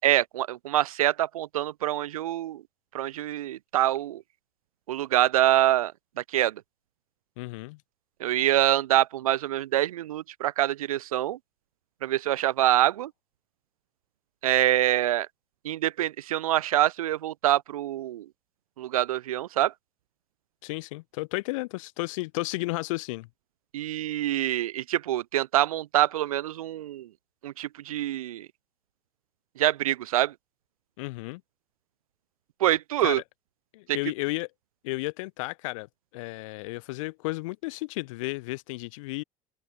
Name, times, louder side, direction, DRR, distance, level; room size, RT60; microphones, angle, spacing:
voice 1, 0.0-2.6 2.9-4.2 4.9-6.6 8.2-11.4 12.0-13.1 14.4-15.3 15.6-18.3 18.8-19.7 23.7-27.1 27.4-28.5 29.6-30.3 32.6-33.2 33.9-34.0, right 13 dB, 75° right, 0.4 m, -25 dB
voice 2, 7.4-7.8 20.6-23.3 31.0-31.4 33.0-33.2 33.7-34.5 34.8-35.9 36.1-39.2, left 22 dB, 60° left, 0.7 m, -33 dB
open air
figure-of-eight pair, 65°, 18 cm